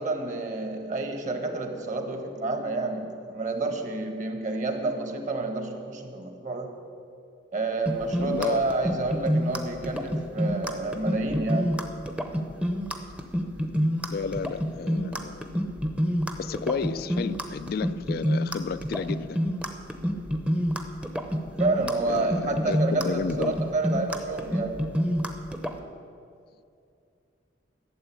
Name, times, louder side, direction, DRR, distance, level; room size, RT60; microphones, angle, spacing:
voice 1, 0.0-6.7 7.5-11.7 21.6-24.8, right 2 dB, 40° right, 1.4 m, -29 dB
sound 1, 7.9-25.8, equal, 5° right, 0.8 m, -27 dB
voice 2, 8.2-8.7 14.1-15.6 16.4-19.4 22.1-23.6, left 5 dB, 55° left, 0.3 m, -32 dB
12.5 x 7.9 x 8.4 m
head